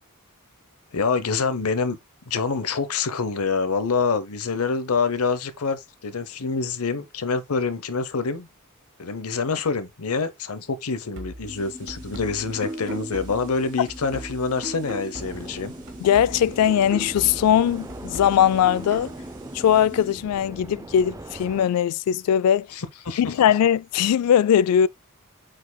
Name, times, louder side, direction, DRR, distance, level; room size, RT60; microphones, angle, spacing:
voice 1, 0.9-2.0 2.3-8.5 9.0-15.7 22.7-23.3, left 4 dB, 70° left, 0.8 m, -26 dB
sound 1, 11.2-15.6 15.9-19.2, right 1 dB, 55° right, 2.1 m, -38 dB
sound 2, 11.5-20.1, equal, 40° right, 2.5 m, -43 dB
sound 3, 15.1-21.7, right 2 dB, 15° right, 0.3 m, -41 dB
voice 2, 16.0-19.1 19.5-22.7 23.2-24.9, left 9 dB, 90° left, 0.3 m, -20 dB
8.3 x 5.1 x 2.2 m
head